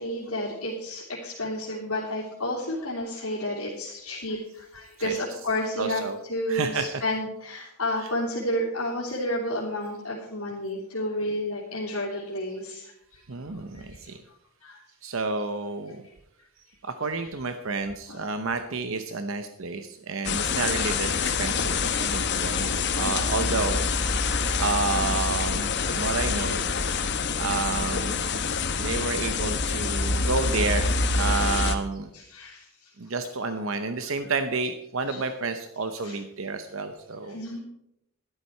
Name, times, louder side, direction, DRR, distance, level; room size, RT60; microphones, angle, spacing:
voice 1, 0.0-13.2 13.5-14.8 18.1-18.2 21.9-22.1 22.5-23.0 28.8-28.9 32.1-32.9 35.1-35.2 36.0-36.2 37.2-37.6, left 1 dB, 80° left, -7 dB, 3.0 m, -31 dB
voice 2, 5.0-5.4 5.8-6.2 6.5-7.0 7.9-8.1 13.3-14.2 15.0-16.0 16.8-23.9 24.6-26.7 27.4-28.2 28.7-32.1 33.0-37.4, right 3 dB, 65° right, 8 dB, 0.8 m, -30 dB
sound 1, 20.2-31.8, left 4 dB, 50° left, 1.1 m, -26 dB
12.5 x 11.5 x 4.5 m, 0.81 s
head